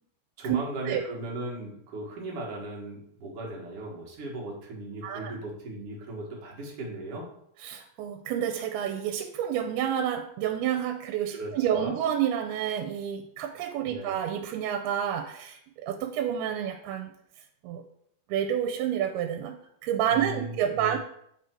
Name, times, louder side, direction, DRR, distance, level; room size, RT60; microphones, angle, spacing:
voice 1, 0.4-7.3 11.3-11.9 13.8-14.2 20.1-21.0, right 2 dB, 55° right, -2 dB, 1.7 m, -37 dB
voice 2, 5.0-5.4 7.6-17.1 17.6-17.8 18.3-21.0, right 9 dB, 90° right, 5 dB, 2.5 m, -29 dB
9.0 x 3.4 x 4.4 m, 0.72 s
omnidirectional pair, 4.4 m